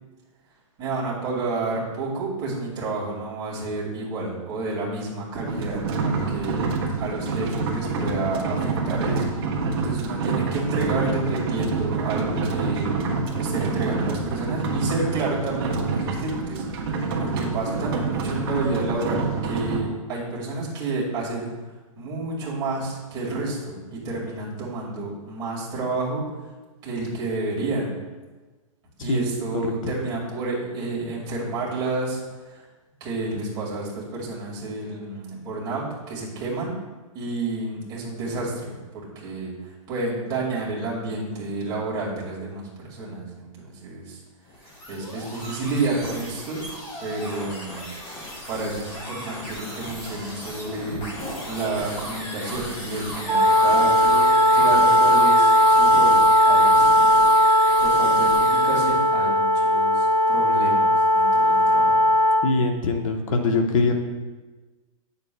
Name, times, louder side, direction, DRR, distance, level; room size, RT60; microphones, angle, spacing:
voice 1, 0.8-13.0 13.4-21.5 22.0-26.2 26.8-28.0 29.0-32.2 32.5-32.6 33.0-36.8 37.1-39.5 39.9-44.2 44.9-46.6 47.0-48.0 48.5-51.0 51.5-56.9 57.8-62.1, right 3 dB, 20° right, -5 dB, 2.1 m, -30 dB
sound 1, 5.5-19.8, right 4 dB, 45° right, 1.2 m, -27 dB
voice 2, 29.6-29.9 62.4-63.9, left 3 dB, 70° left, 4 dB, 1.0 m, -23 dB
sound 2, 44.4-59.1, left 1 dB, 25° left, 1.5 m, -36 dB
Wind instrument woodwind instrument, 53.2-62.4, equal, 5° left, 2.4 m, -17 dB
9.5 x 6.8 x 2.3 m, 1.3 s
hypercardioid pair, 165°, 18 cm